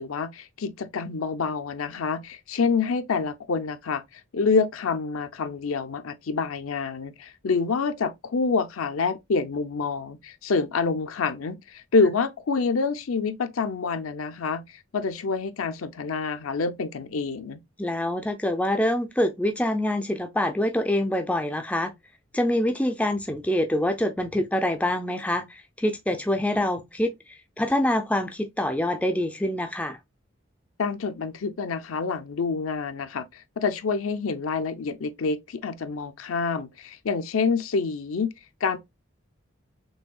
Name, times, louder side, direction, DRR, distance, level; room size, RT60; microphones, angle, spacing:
voice 1, 0.0-14.6 14.9-17.6 30.8-38.3 38.6-38.8, left 4 dB, 80° left, 0.6 m, -27 dB
voice 2, 17.8-21.9 22.3-27.1 27.6-30.0, left 1 dB, 5° left, 0.4 m, -25 dB
6.2 x 2.7 x 2.3 m
head